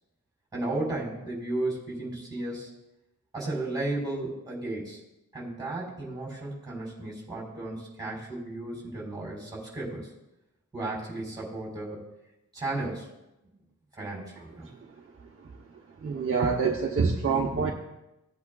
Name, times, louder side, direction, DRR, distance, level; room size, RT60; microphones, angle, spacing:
voice 1, 0.5-2.7 3.3-5.0 5.3-10.1 10.7-12.1 12.5-13.1 13.9-14.7, right 2 dB, 10° right, -4 dB, 4.0 m, -34 dB
voice 2, 16.0-17.7, right 5 dB, 45° right, 0 dB, 0.8 m, -26 dB
17.0 x 8.4 x 2.3 m, 0.93 s
wide cardioid pair, 180°, 31 cm